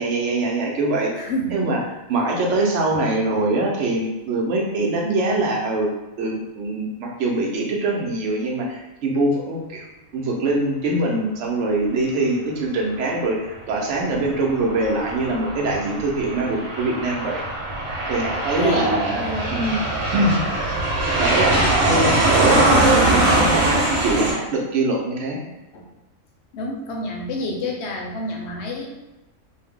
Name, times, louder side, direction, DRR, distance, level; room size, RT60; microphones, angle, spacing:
voice 1, 0.0-1.1 1.5-1.8 2.1-5.9 6.2-9.9 10.1-17.4 18.1-19.2 19.5-19.8 20.1-20.3 20.6-20.8 21.2-25.4, right 2 dB, 65° right, -1 dB, 0.9 m, -23 dB
voice 2, 1.1-1.6 2.2-2.3 18.5-19.7 25.7-25.8 26.5-28.9, left 1 dB, 65° left, 0 dB, 0.8 m, -28 dB
Aircraft, 14.1-24.3, right 2 dB, 85° right, 1.2 m, -21 dB
2.6 x 2.0 x 3.5 m, 1.0 s
omnidirectional pair, 1.4 m